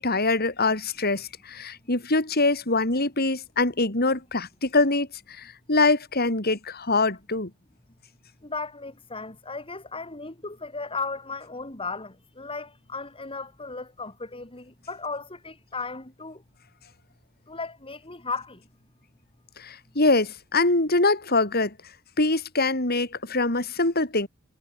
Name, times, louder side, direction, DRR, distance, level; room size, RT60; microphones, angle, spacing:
voice 1, 0.0-5.1 5.4-7.5 19.6-21.7 22.2-24.3, left 2 dB, 50° left, 4.8 m, -24 dB
voice 2, 8.4-16.4 17.5-18.6, left 4 dB, 25° left, 3.6 m, -36 dB
head